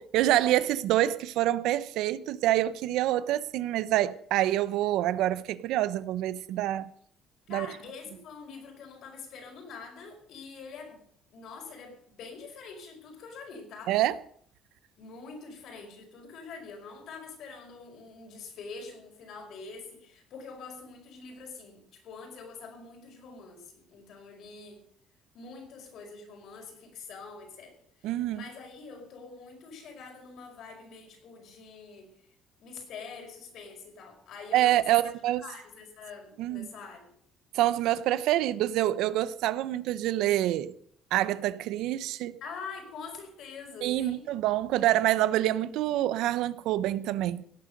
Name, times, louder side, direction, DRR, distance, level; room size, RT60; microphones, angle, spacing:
voice 1, 0.0-6.9 7.5-7.7 13.9-14.1 28.0-28.4 34.5-35.4 36.4-36.7 37.5-40.7 41.1-42.4 43.8-47.4, right 14 dB, 75° right, 0.7 m, -26 dB
voice 2, 7.5-11.0 11.3-14.0 15.0-24.8 25.3-32.1 32.6-35.1 35.4-37.1 42.4-44.3, left 4 dB, 55° left, 5.2 m, -45 dB
17.0 x 9.2 x 6.6 m
cardioid pair, 150°, 0 cm